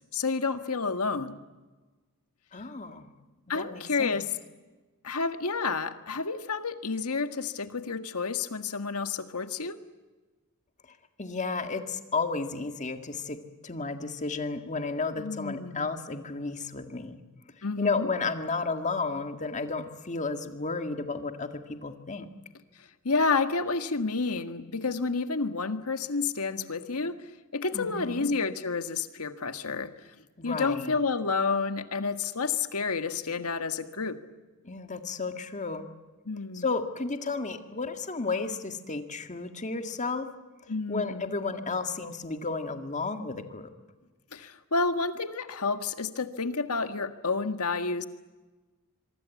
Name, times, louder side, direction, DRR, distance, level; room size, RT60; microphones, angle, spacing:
voice 1, 0.1-1.4 3.5-4.3 5.0-9.8 15.2-15.9 17.6-18.1 23.0-27.2 27.5-29.9 30.4-34.2 36.2-36.6 40.7-41.2 44.3-48.1, left 4 dB, 85° left, 9 dB, 1.7 m, -30 dB
voice 2, 2.5-3.2 3.5-4.2 11.2-13.4 13.6-17.2 17.8-22.3 27.7-28.3 30.4-30.9 34.6-35.9 36.5-40.3 40.9-43.7, left 4 dB, 35° left, 7 dB, 1.9 m, -32 dB
25.5 x 24.0 x 8.4 m, 1.2 s
head